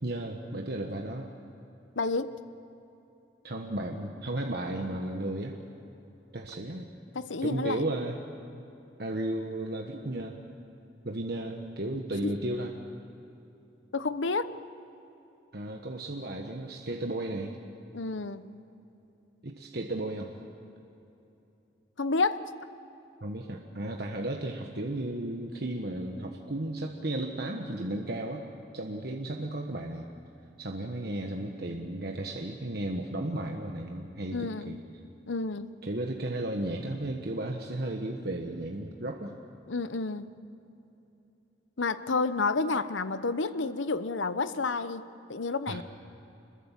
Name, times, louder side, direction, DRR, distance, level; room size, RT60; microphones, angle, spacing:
voice 1, 0.0-1.3 3.4-5.6 6.3-6.9 7.4-8.2 9.0-10.4 11.0-12.7 15.5-17.5 19.4-20.3 23.2-28.4 28.7-30.1 30.6-34.8 35.8-39.3 45.7-45.8, right 1 dB, 55° right, 2 dB, 1.4 m, -34 dB
voice 2, 2.0-2.3 7.1-7.8 12.2-12.3 13.9-14.5 17.9-18.6 22.0-22.5 34.3-34.8 35.3-35.7 39.7-40.3 41.8-45.0 45.3-45.8, left 3 dB, 90° left, 12 dB, 0.9 m, -30 dB
26.5 x 21.5 x 7.4 m, 3.0 s
head